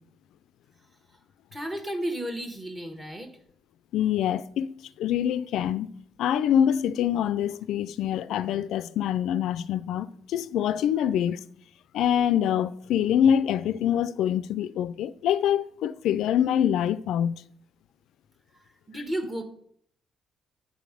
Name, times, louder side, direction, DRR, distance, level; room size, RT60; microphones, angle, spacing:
voice 1, 1.5-3.3 18.9-19.4, right 1 dB, 15° right, 1.2 m, -32 dB
voice 2, 3.9-5.9 6.2-11.4 11.9-17.4, left 9 dB, 80° left, 0.3 m, -25 dB
8.4 x 3.7 x 4.9 m
cardioid pair, 90°, 0 cm